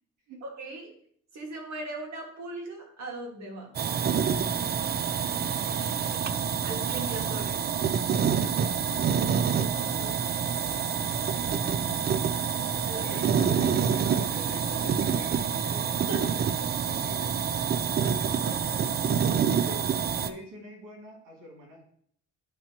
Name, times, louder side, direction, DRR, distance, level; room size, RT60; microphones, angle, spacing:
voice 1, 0.4-0.9 1.3-3.8 6.6-7.6 9.0-9.5 12.8-13.2 16.1-16.2 18.5-18.6 19.6-19.9, right 2 dB, 65° right, 1 dB, 1.9 m, -38 dB
sound 1, 3.7-20.3, right 7 dB, 35° right, 0.4 m, -27 dB
voice 2, 5.6-6.1 8.3-8.6 9.7-10.2 13.0-19.2 20.1-21.8, right 1 dB, 85° right, -2 dB, 2.6 m, -46 dB
11.0 x 3.7 x 2.9 m, 0.64 s
cardioid pair, 90°, 30 cm